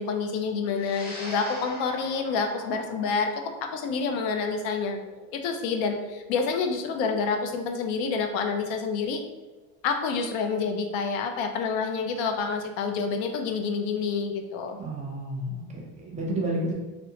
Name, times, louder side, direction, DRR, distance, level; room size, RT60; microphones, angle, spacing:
voice 1, 0.0-5.0 5.3-9.2 9.8-14.8, left 5 dB, 85° left, 5 dB, 0.5 m, -28 dB
sound 1, 0.7-9.3, equal, 25° left, 0.7 m, -44 dB
voice 2, 14.8-16.7, right 1 dB, 20° right, -2 dB, 0.5 m, -31 dB
2.9 x 2.0 x 2.7 m, 1.1 s
cardioid pair, 120°, 39 cm